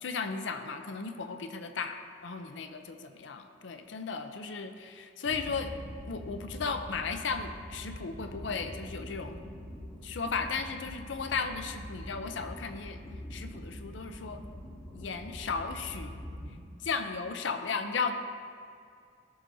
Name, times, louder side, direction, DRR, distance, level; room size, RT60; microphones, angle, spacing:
voice 1, 0.0-5.7 6.1-9.4 10.0-13.0 13.3-14.4 14.9-16.2 16.8-18.2, left 5 dB, 75° left, 7 dB, 0.5 m, -35 dB
sound 1, 5.2-16.5, equal, 20° left, 1.7 m, -44 dB
14.0 x 6.1 x 2.7 m, 2.3 s
head